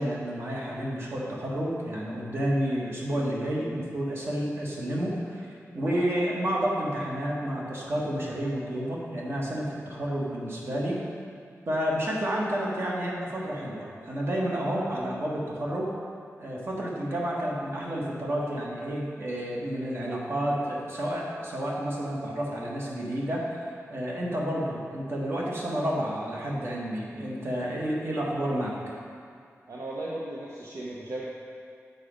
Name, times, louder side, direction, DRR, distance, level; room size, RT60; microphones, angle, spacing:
voice 1, 0.0-5.5 5.7-11.0 11.7-15.9 16.4-23.5 23.9-28.8, equal, 50° right, -4 dB, 1.3 m, -30 dB
voice 2, 29.7-31.2, right 1 dB, 65° right, -5 dB, 0.7 m, -36 dB
6.7 x 5.1 x 5.1 m, 2.2 s
wide cardioid pair, 145°, 5 cm